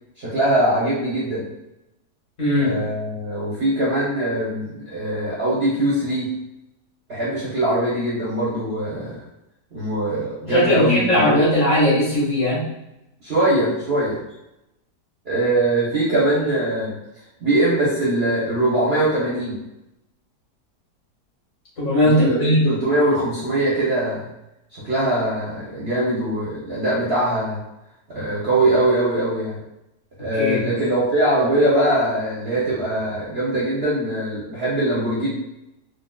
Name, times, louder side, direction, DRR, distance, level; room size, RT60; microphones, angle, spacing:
voice 1, 0.2-1.4 2.6-6.3 7.1-9.2 9.7-11.4 13.2-14.2 15.2-16.9 17.4-19.6 22.0-24.2 24.7-27.6 28.1-29.6 30.2-35.3, right 1 dB, 50° right, -7 dB, 0.9 m, -22 dB
voice 2, 2.4-2.7 10.5-12.6 21.8-22.6 30.3-30.6, equal, 50° left, -8 dB, 1.8 m, -18 dB
4.0 x 2.4 x 2.2 m, 0.89 s
omnidirectional pair, 1.8 m